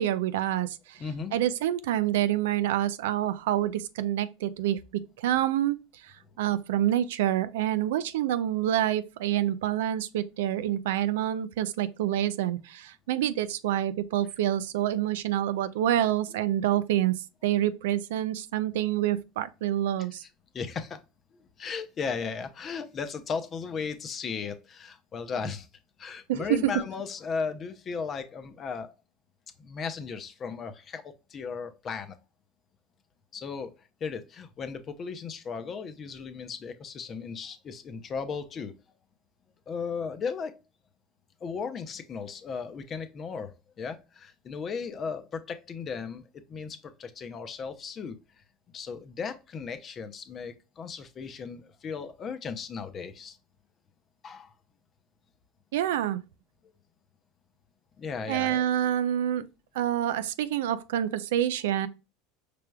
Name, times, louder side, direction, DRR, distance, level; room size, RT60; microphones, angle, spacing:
voice 1, 0.0-1.0 1.3-4.8 5.2-5.8 6.0-20.2 26.3-26.7 55.7-56.2 58.3-59.5 59.7-61.9, right 12 dB, 80° right, 0.4 m, -27 dB
voice 2, 1.0-1.3 20.5-21.0 21.3-25.7 26.0-28.9 29.6-32.2 33.3-38.8 39.7-40.6 41.4-46.2 46.5-48.2 48.7-53.4 54.2-54.5 58.0-58.6, left 5 dB, 35° left, 0.7 m, -36 dB
5.0 x 3.3 x 2.2 m
hypercardioid pair, 95°, 0 cm